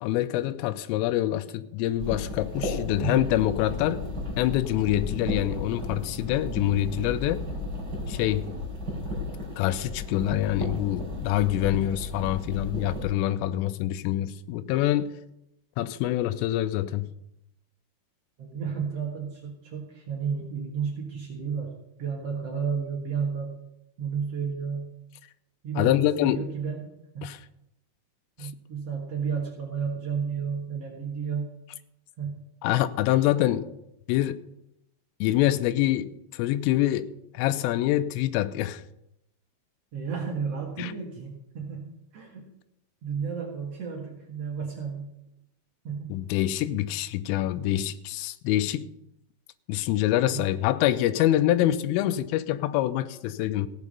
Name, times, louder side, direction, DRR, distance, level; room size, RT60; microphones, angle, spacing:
voice 1, 0.0-4.0 4.4-7.5 8.1-8.5 9.6-15.1 15.8-17.1 25.8-26.4 27.2-27.4 28.4-28.5 32.6-33.7 34.1-34.4 35.2-37.1 37.3-38.8 40.8-40.9 46.1-48.9 49.7-53.7, left 14 dB, 85° left, 3.2 m, -25 dB
sound 1, 2.0-13.0, left 2 dB, 20° right, 3.9 m, -34 dB
voice 2, 18.4-23.5 24.0-24.9 25.6-27.3 28.4-31.5 32.2-32.5 39.9-41.9 42.1-42.4 43.0-45.1 45.8-46.2 50.3-50.4, right 6 dB, 75° right, 1.4 m, -32 dB
16.0 x 8.3 x 5.4 m
omnidirectional pair, 5.7 m